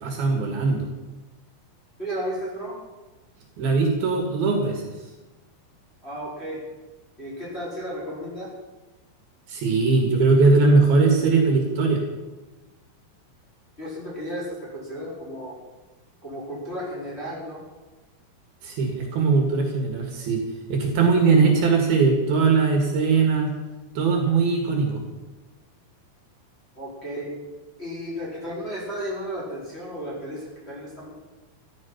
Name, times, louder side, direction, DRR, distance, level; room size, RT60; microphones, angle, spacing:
voice 1, 0.0-0.9 3.6-4.8 9.5-12.0 18.6-20.4 20.7-23.5 24.0-25.0, right 4 dB, 65° right, 2 dB, 3.6 m, -20 dB
voice 2, 2.0-2.8 6.0-6.6 7.2-8.5 13.8-15.6 16.2-17.6 26.7-27.4 27.8-31.1, equal, 15° left, -7 dB, 4.6 m, -33 dB
14.0 x 12.5 x 5.8 m, 1.2 s
omnidirectional pair, 4.9 m